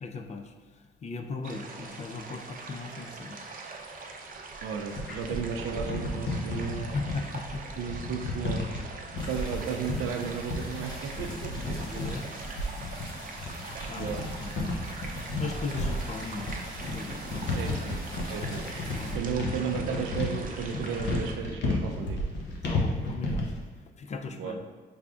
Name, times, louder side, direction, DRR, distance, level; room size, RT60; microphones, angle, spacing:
voice 1, 0.0-3.4 6.9-7.7 11.8-12.3 13.9-14.1 14.4-14.6 15.4-16.6 16.9-17.3 18.9-19.2 22.6-23.5 24.0-24.6, left 3 dB, 35° left, 6 dB, 0.4 m, -38 dB
sound 1, 1.4-21.3, right 3 dB, 45° right, 0.6 m, -43 dB
sound 2, 4.5-23.6, left 2 dB, 60° left, 0.9 m, -33 dB
voice 2, 4.6-7.0 7.8-8.6 9.3-11.8 14.0-14.2 17.5-18.0 18.3-18.7 19.1-22.2 24.3-24.6, right 6 dB, 90° right, 4 dB, 0.5 m, -34 dB
sound 3, 9.2-19.2, equal, 20° left, 1.0 m, -44 dB
4.8 x 3.4 x 2.4 m, 1.4 s
cardioid pair, 90°, 20 cm